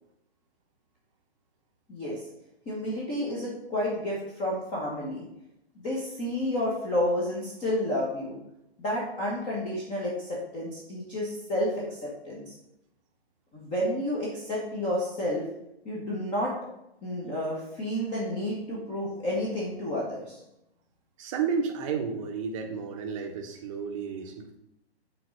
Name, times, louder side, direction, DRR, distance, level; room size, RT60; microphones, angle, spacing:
voice 1, 1.9-2.2 2.7-5.3 5.7-8.4 8.8-12.5 13.5-15.4 15.8-16.5 17.0-20.4, left 1 dB, 15° left, -5 dB, 1.3 m, -30 dB
voice 2, 21.2-24.6, right 6 dB, 30° right, 4 dB, 1.0 m, -32 dB
6.6 x 3.9 x 6.4 m, 0.83 s
figure-of-eight pair, 125°, 32 cm